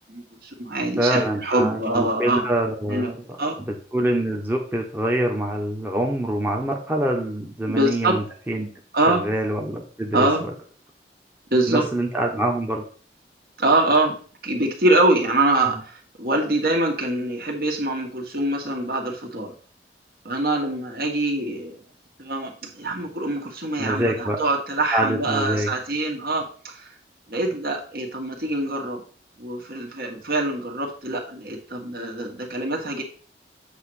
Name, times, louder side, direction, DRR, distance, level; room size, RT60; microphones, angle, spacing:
voice 1, 0.1-2.5 2.9-3.1 3.4-3.6 7.7-8.2 8.9-9.2 10.1-10.5 11.5-11.8 13.6-14.2 14.4-19.5 20.3-21.8 22.2-26.9 27.3-29.0 29.4-33.0, right 2 dB, 55° right, 1 dB, 1.8 m, -24 dB
voice 2, 1.0-3.2 3.6-8.7 9.1-10.3 11.7-12.8 23.8-24.4 24.9-25.7, right 1 dB, 10° right, 0 dB, 1.0 m, -25 dB
8.0 x 3.1 x 6.3 m, 0.41 s
head